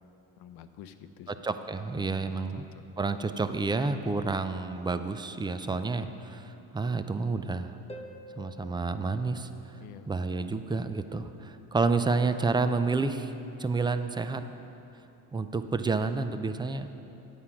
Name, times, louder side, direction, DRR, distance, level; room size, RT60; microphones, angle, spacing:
voice 1, 0.4-1.3 1.9-2.6 4.2-4.6 5.9-6.3 9.8-10.1, left 9 dB, 65° left, 10 dB, 0.7 m, -47 dB
voice 2, 1.3-2.6 3.0-7.7 8.4-9.5 10.1-13.3 13.6-14.4 15.3-16.9, right 4 dB, 10° right, 10 dB, 0.4 m, -29 dB
Harp, 7.9-10.4 13.9-14.0, left 1 dB, 15° left, 0.8 m, -49 dB
9.4 x 8.5 x 5.9 m, 2.9 s
supercardioid pair, 90°, 41 cm